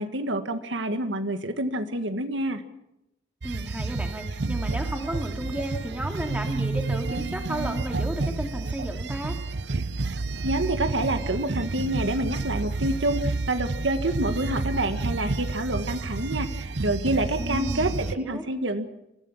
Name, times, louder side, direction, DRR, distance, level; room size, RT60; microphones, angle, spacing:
voice 1, 0.0-2.6 10.4-18.9, right 1 dB, 80° right, 8 dB, 1.7 m, -27 dB
voice 2, 3.4-9.4 17.4-18.4, right 1 dB, 5° right, 3 dB, 2.5 m, -33 dB
sound 1, 3.4-18.2, right 3 dB, 65° right, 0.8 m, -30 dB
25.5 x 15.5 x 7.3 m, 0.86 s
head